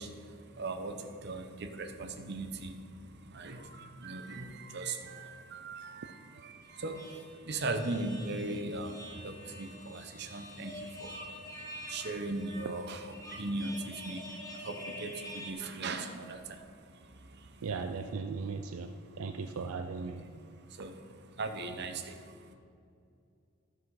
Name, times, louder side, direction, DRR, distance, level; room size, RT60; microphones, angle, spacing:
voice 1, 0.0-17.7 19.0-19.2 20.7-22.5, right 2 dB, 50° right, 6 dB, 0.8 m, -39 dB
sound 1, 6.6-15.5, left 1 dB, 15° left, 1.3 m, -47 dB
voice 2, 17.6-18.9 19.2-20.4, right 4 dB, 80° right, 7 dB, 0.4 m, -37 dB
13.0 x 5.9 x 4.8 m, 2.4 s
head